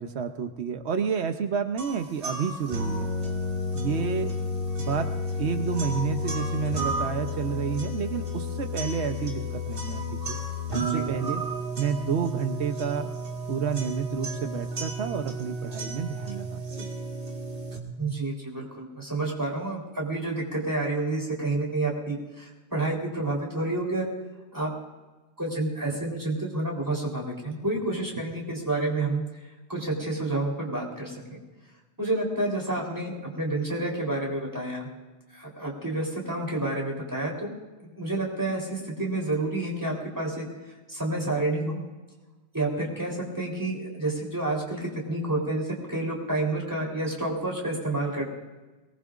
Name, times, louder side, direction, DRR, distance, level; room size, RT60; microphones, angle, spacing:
voice 1, 0.0-3.1 3.7-4.3 4.8-5.1 5.4-10.0 10.3-10.4 10.7-11.4 11.8-13.1 13.5-16.6, right 6 dB, 90° right, 7 dB, 1.1 m, -30 dB
sound 1, 1.8-17.8, left 1 dB, 55° right, 2.1 m, -32 dB
voice 2, 18.0-24.1 24.5-24.8 25.4-29.3 29.7-31.4 32.0-34.9 35.3-37.5 37.9-40.5 40.9-41.8 42.5-48.3, right 2 dB, 15° right, -1 dB, 3.7 m, -29 dB
23.0 x 19.5 x 2.5 m, 1.2 s
omnidirectional pair, 1.1 m